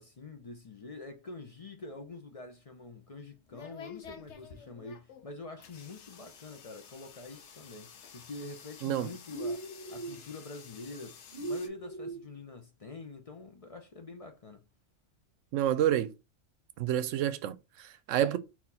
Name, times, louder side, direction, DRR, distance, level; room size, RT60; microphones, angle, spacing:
voice 1, 0.0-14.6, left 3 dB, 40° left, 0.5 m, -46 dB
sound 1, 2.7-11.7, left 7 dB, 65° left, 1.0 m, -51 dB
sound 2, 9.3-10.2 11.3-12.2, right 2 dB, 45° right, 0.9 m, -38 dB
voice 2, 15.5-16.1 16.8-18.4, right 11 dB, 75° right, 0.9 m, -29 dB
4.2 x 2.9 x 4.1 m
omnidirectional pair, 1.3 m